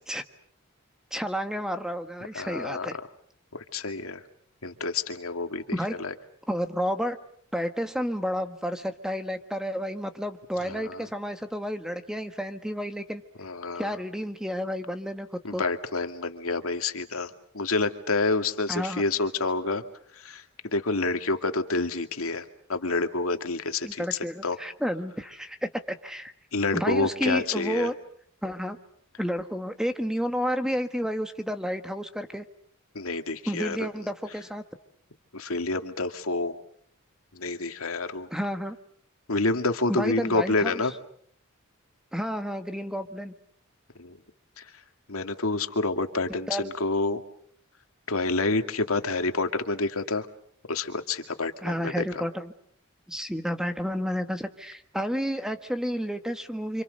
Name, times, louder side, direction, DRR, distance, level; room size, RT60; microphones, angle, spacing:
voice 1, 1.1-3.0 5.7-6.0 6.5-7.2 7.5-13.2 13.7-15.3 15.5-15.6 18.7-19.0 23.8-26.3 26.7-27.9 28.4-28.8 29.2-32.4 33.5-34.6 38.3-38.8 39.9-40.8 42.1-43.3 46.3-46.7 51.6-52.5 53.1-56.8, equal, 5° right, 8 dB, 1.4 m, -31 dB
voice 2, 2.3-2.9 3.5-4.2 4.6-6.1 10.6-11.1 13.4-13.9 15.4-19.8 20.1-24.0 24.4-24.6 26.5-27.9 32.9-33.9 35.3-36.6 37.3-38.3 39.3-40.9 44.0-44.2 44.6-44.7 45.1-47.2 48.1-50.3 50.7-52.2, left 3 dB, 80° left, 7 dB, 2.2 m, -28 dB
30.0 x 26.5 x 6.6 m, 0.65 s
head